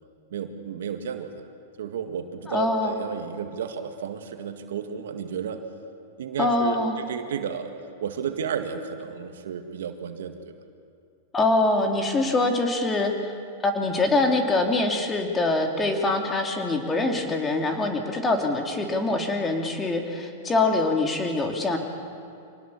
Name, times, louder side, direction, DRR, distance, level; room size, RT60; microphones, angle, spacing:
voice 1, 0.3-1.3 1.8-5.6 6.2-7.7 8.0-10.4, right 7 dB, 75° right, 7 dB, 1.9 m, -32 dB
voice 2, 2.5-2.9 6.4-7.0 11.3-13.3 13.6-21.8, left 2 dB, 20° left, 3 dB, 3.1 m, -24 dB
25.5 x 19.0 x 7.3 m, 2.5 s
hypercardioid pair, 110°, 0 cm